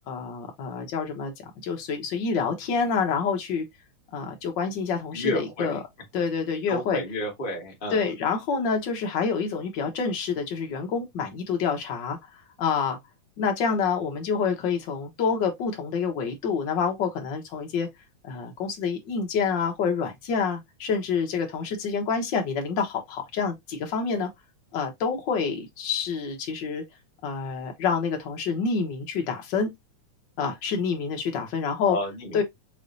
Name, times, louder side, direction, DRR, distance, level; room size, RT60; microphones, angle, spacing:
voice 1, 0.1-1.3 1.6-3.6 4.1-5.8 6.1-7.0 7.9-13.0 13.4-17.9 18.2-24.3 24.7-26.8 27.2-29.7 30.4-32.0 32.3-32.4, left 5 dB, 75° left, 1.0 m, -27 dB
voice 2, 5.1-5.8 6.7-8.0 31.8-32.4, equal, 45° left, 0.6 m, -31 dB
5.3 x 3.2 x 2.6 m
omnidirectional pair, 3.4 m